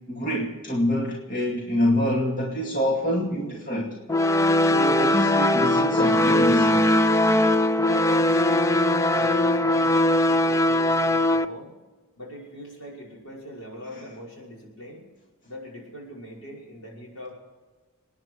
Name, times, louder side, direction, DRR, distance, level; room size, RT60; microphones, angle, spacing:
voice 1, 0.1-4.0 4.6-6.9, equal, 40° left, -2 dB, 2.4 m, -26 dB
sound 1, 4.1-11.4, left 1 dB, 15° left, 0.4 m, -20 dB
voice 2, 8.5-11.7 12.2-15.0 15.4-17.3, equal, 80° left, -3 dB, 5.7 m, -41 dB
27.5 x 9.9 x 4.8 m, 1.3 s
head